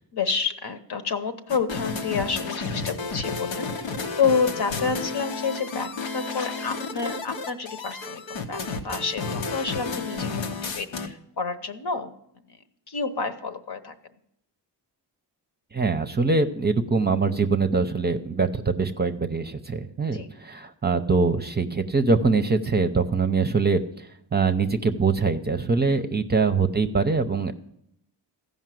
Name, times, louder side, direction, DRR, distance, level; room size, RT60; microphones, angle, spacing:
voice 1, 0.1-12.1 12.9-13.9 18.4-18.5 20.1-20.3 25.8-26.2, left 5 dB, 60° left, 8 dB, 1.1 m, -29 dB
sound 1, 1.5-11.1, left 4 dB, 90° left, 1.1 m, -32 dB
voice 2, 15.7-23.8 24.3-27.5, right 4 dB, 20° right, 8 dB, 0.7 m, -23 dB
14.5 x 5.4 x 7.6 m, 0.75 s
cardioid pair, 80°, 45 cm